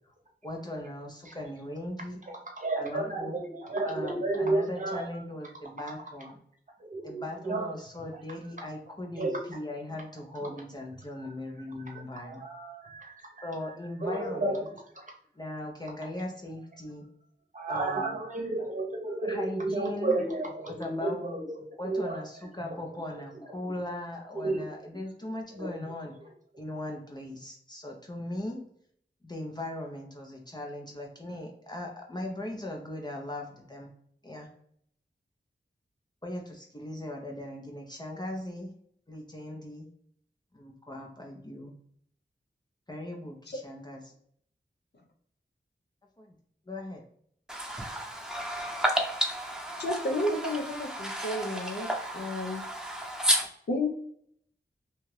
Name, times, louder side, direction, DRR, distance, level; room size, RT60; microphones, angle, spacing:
voice 1, 0.4-2.2 2.8-3.3 3.8-6.4 7.0-12.4 13.4-14.5 15.4-17.1 17.7-18.2 19.2-20.1 20.6-21.4 21.8-26.2 26.6-28.6 29.2-33.9 34.2-34.5 36.2-38.7 39.1-39.9 40.5-41.7 42.9-44.0 46.2-46.3 46.7-47.0, left 1 dB, 25° left, 0 dB, 0.5 m, -39 dB
voice 2, 2.3-5.1 6.8-7.8 9.1-9.4 10.4-10.6 11.2-11.3 11.9-13.5 14.0-14.7 14.9-15.2 17.5-22.2 24.4-24.7 25.5-25.7 26.2-26.3, right 2 dB, 45° right, 1 dB, 0.8 m, -32 dB
voice 3, 47.5-53.5, equal, 5° right, -1 dB, 0.9 m, -32 dB
voice 4, 49.8-51.9 52.2-52.6 53.7-53.9, left 1 dB, 65° left, 3 dB, 0.6 m, -31 dB
2.8 x 2.3 x 3.1 m, 0.66 s
wide cardioid pair, 60°, 19 cm